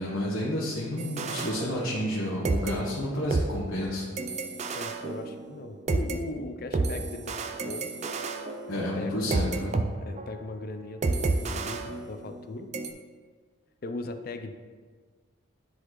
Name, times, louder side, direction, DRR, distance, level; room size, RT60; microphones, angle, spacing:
voice 1, 0.0-4.1 8.7-9.7, left 1 dB, 80° left, -6 dB, 1.1 m, -30 dB
sound 1, 1.0-2.2 2.4-6.2 6.7-9.8 10.2-10.4 11.0-12.4 12.7-12.9, right 3 dB, 35° right, 0.3 m, -31 dB
voice 2, 4.7-7.9 8.7-9.6 10.0-12.7 13.8-14.6, left 2 dB, 45° left, 7 dB, 0.4 m, -38 dB
10.5 x 4.0 x 3.1 m, 1.5 s
head